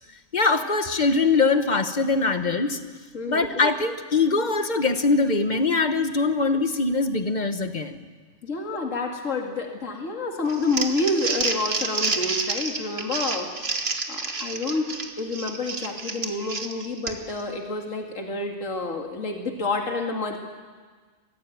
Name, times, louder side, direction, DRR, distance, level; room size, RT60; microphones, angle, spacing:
voice 1, 0.3-2.8 3.3-8.0, left 3 dB, 35° left, 9 dB, 1.2 m, -22 dB
voice 2, 3.1-3.5 8.4-13.5 14.1-14.9 15.2-20.4, left 2 dB, 65° left, 2 dB, 2.6 m, -28 dB
Crumpling crinkling, 10.5-17.4, right 3 dB, 50° right, 1.8 m, -29 dB
23.0 x 15.0 x 9.3 m, 1.5 s
omnidirectional pair, 1.4 m